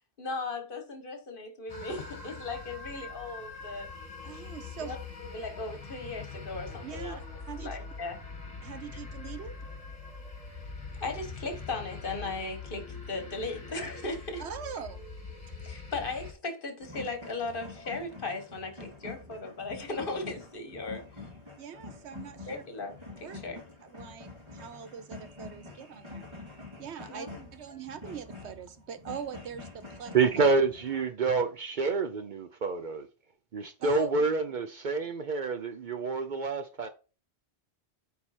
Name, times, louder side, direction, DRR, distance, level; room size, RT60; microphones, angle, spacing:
voice 1, 0.2-3.9 4.8-7.2 7.6-8.2 11.0-14.4 15.6-21.0 22.5-23.6 27.1-27.5, left 3 dB, 55° left, 1.4 m, -37 dB
sound 1, 1.7-16.3, left 4 dB, 35° left, 2.0 m, -43 dB
voice 2, 4.2-5.0 6.8-7.2 7.5-7.8 8.6-9.5 14.4-15.0 21.6-22.6 23.2-23.4 23.8-26.3 26.8-30.1 33.8-34.3, right 8 dB, 80° right, 1.1 m, -42 dB
sound 2, 16.8-31.0, left 3 dB, 25° right, 2.3 m, -46 dB
voice 3, 30.1-33.1 33.5-36.9, right 4 dB, 55° right, 0.7 m, -28 dB
8.8 x 3.5 x 4.3 m
omnidirectional pair, 1.1 m